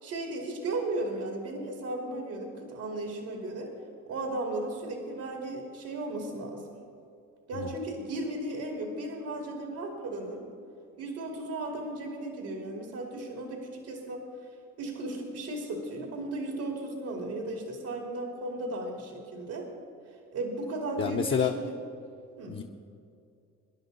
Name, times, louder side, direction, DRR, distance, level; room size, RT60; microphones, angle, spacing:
voice 1, 0.0-3.7 4.1-6.8 7.5-10.5 11.0-14.3 14.8-19.7 20.3-21.6 22.4-22.6, right 2 dB, 85° right, 1 dB, 2.6 m, -35 dB
voice 2, 21.0-21.5 22.5-22.6, left 7 dB, 40° left, 1 dB, 0.9 m, -28 dB
24.0 x 11.0 x 4.0 m, 2.5 s
cardioid pair, 90°, 30 cm